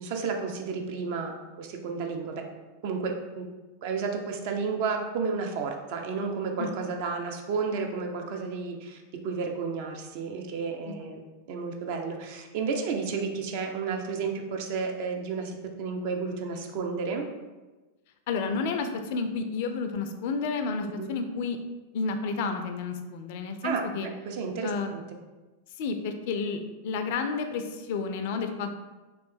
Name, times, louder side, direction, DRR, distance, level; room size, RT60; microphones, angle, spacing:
voice 1, 0.0-2.4 2.8-3.4 3.8-9.0 9.2-11.2 11.5-17.2 20.8-21.1 23.6-23.9 24.2-25.0, right 5 dB, 50° right, 3 dB, 0.5 m, -32 dB
voice 2, 18.3-21.6 21.9-24.1 24.6-24.9 25.8-28.7, left 4 dB, 50° left, 7 dB, 0.3 m, -31 dB
3.1 x 2.9 x 3.3 m, 1.2 s
figure-of-eight pair, 90°, 0 cm